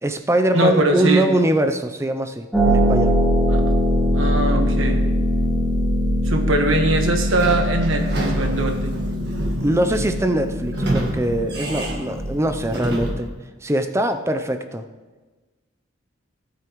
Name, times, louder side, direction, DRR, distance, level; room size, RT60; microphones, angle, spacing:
voice 1, 0.0-3.2 9.6-13.3 13.6-14.8, right 1 dB, 15° right, 8 dB, 0.5 m, -22 dB
voice 2, 0.5-1.3 3.5-3.6 4.1-5.0 6.2-8.9, right 1 dB, 85° right, 4 dB, 1.4 m, -21 dB
Harp, 2.5-13.1, equal, ahead, 1.8 m, -22 dB
Sliding door / Squeak, 7.2-13.4, right 1 dB, 55° right, 1.6 m, -29 dB
16.5 x 8.5 x 3.1 m, 1.3 s
head